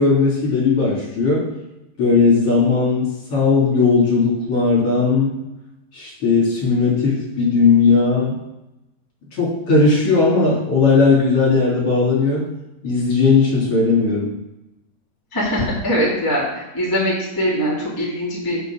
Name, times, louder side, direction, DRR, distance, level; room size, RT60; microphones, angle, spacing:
voice 1, 0.0-1.5 2.0-5.3 5.9-8.4 9.4-12.5 12.8-14.3, left 4 dB, 40° left, -6 dB, 4.2 m, -17 dB
voice 2, 15.3-18.6, equal, 5° left, -7 dB, 2.3 m, -22 dB
8.1 x 6.9 x 6.7 m, 0.93 s
omnidirectional pair, 4.4 m